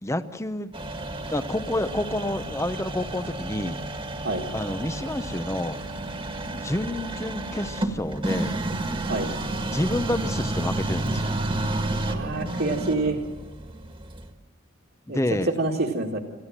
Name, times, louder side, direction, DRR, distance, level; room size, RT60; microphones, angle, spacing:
voice 1, 0.0-0.7 1.3-3.8 4.5-5.8 6.5-8.5 9.6-11.3 15.1-15.5, left 1 dB, 15° left, 11 dB, 0.8 m, -29 dB
sound 1, 0.7-14.3, right 2 dB, 25° right, 1.7 m, -31 dB
voice 2, 12.1-13.2 15.1-15.2 15.6-16.2, right 2 dB, 65° right, -4 dB, 2.0 m, -27 dB
27.5 x 15.0 x 7.5 m, 1.3 s
head